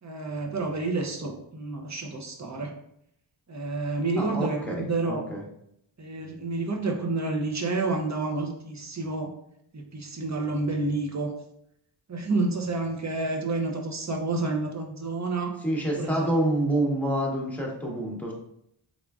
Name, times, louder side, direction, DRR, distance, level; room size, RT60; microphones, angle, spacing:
voice 1, 0.0-2.7 3.5-5.2 6.0-9.3 9.7-11.3 12.1-15.6 16.0-16.3, right 3 dB, 35° right, 2 dB, 0.7 m, -29 dB
voice 2, 4.2-5.4 15.6-18.3, right 1 dB, 5° left, -2 dB, 1.1 m, -27 dB
3.6 x 3.6 x 2.3 m, 0.75 s
wide cardioid pair, 55°, 48 cm